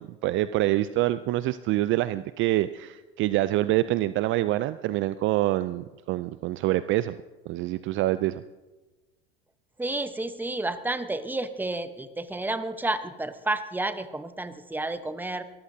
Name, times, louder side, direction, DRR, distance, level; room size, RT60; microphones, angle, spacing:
voice 1, 0.0-7.2 7.5-8.4, right 15 dB, 40° right, 15 dB, 0.4 m, -26 dB
voice 2, 9.8-15.4, right 2 dB, 5° right, 10 dB, 1.0 m, -31 dB
22.5 x 14.5 x 2.8 m, 1.2 s
hypercardioid pair, 90°, 30 cm